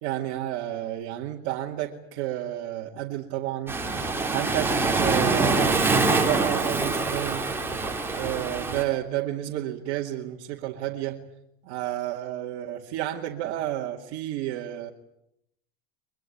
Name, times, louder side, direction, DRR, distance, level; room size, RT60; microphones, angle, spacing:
voice 1, 0.0-3.8 4.3-7.5 8.1-11.2 11.6-14.9, right 13 dB, 55° right, -1 dB, 2.3 m, -31 dB
Waves surf, 3.7-8.8, right 3 dB, 5° right, 3.4 m, -25 dB
23.0 x 22.0 x 9.2 m, 0.78 s
supercardioid pair, 130°, 33 cm